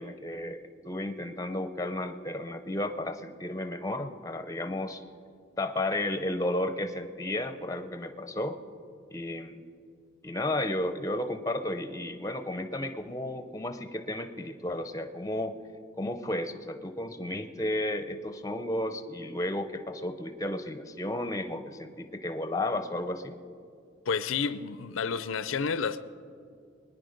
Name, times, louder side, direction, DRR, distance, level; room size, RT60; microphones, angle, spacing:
voice 1, 0.0-5.0 5.6-8.5 9.1-9.6 10.2-15.6 16.0-23.4, left 1 dB, 15° left, 0.6 m, -33 dB
voice 2, 24.1-26.0, left 5 dB, 85° left, 0.5 m, -30 dB
22.0 x 9.9 x 5.1 m
head